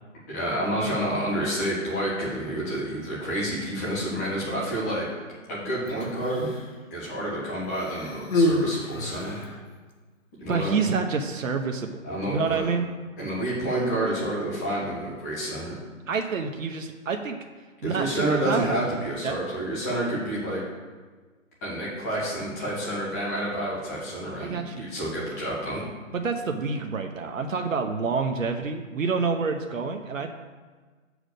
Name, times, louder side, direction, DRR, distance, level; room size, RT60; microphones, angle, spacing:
voice 1, 0.3-5.1 5.5-6.5 6.9-9.4 10.4-10.9 12.0-12.6 13.2-15.8 17.8-20.6 21.6-25.8, right 1 dB, 10° left, -7 dB, 1.6 m, -29 dB
Human voice, 5.9-6.8 7.7-9.6 10.5-10.7, left 1 dB, 70° left, 1.6 m, -28 dB
voice 2, 10.5-11.9 12.3-12.9 16.1-17.4 17.8-18.7 19.2-19.4 24.4-24.9 26.1-30.3, right 5 dB, 70° right, 4 dB, 0.9 m, -28 dB
6.2 x 4.9 x 6.5 m, 1.4 s
hypercardioid pair, 165°, 41 cm